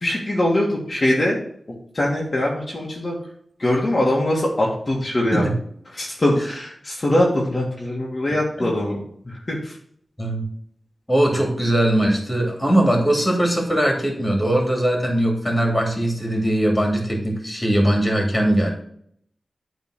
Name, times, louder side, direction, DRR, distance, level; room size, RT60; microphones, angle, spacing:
voice 1, 0.0-1.4 1.9-3.2 3.6-5.5 5.9-9.0 9.3-9.7, left 1 dB, 40° left, -3 dB, 1.7 m, -22 dB
voice 2, 11.1-18.7, right 1 dB, 20° left, 1 dB, 2.6 m, -20 dB
8.9 x 3.7 x 6.4 m, 0.66 s
wide cardioid pair, 90°, 0 cm